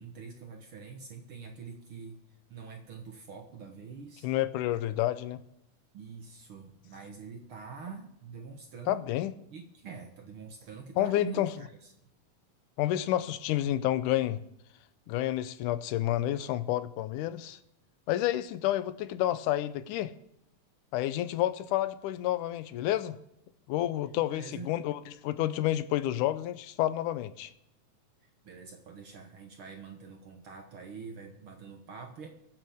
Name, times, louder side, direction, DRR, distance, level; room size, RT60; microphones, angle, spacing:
voice 1, 0.0-2.2 2.5-4.3 5.9-9.0 9.5-11.9 24.3-24.7 28.4-32.3, right 5 dB, 55° right, 4 dB, 1.6 m, -45 dB
voice 2, 4.2-5.4 8.9-9.3 11.0-11.5 12.8-14.4 15.1-17.6 18.1-20.1 20.9-23.2 23.7-27.5, left 13 dB, 85° left, 13 dB, 2.2 m, -29 dB
22.0 x 8.8 x 3.6 m, 0.80 s
omnidirectional pair, 3.6 m